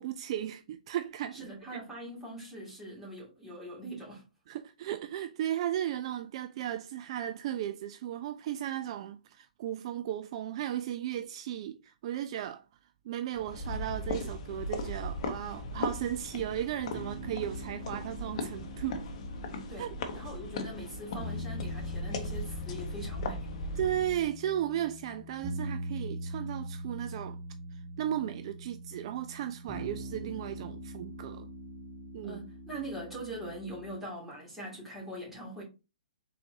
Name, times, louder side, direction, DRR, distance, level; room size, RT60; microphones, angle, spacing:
voice 1, 0.0-1.5 1.7-1.8 4.5-12.6 13.0-19.0 19.8-19.9 23.8-27.4 27.7-31.5 32.1-32.4, right 11 dB, 45° right, 0.3 m, -35 dB
voice 2, 1.3-4.2 19.7-23.5 32.2-35.6, right 1 dB, 5° right, 2.3 m, -42 dB
sound 1, 13.4-24.3, left 2 dB, 50° left, 0.9 m, -38 dB
sound 2, 16.9-33.9, equal, 25° right, 1.4 m, -42 dB
4.4 x 3.9 x 2.7 m
hypercardioid pair, 135°, 4 cm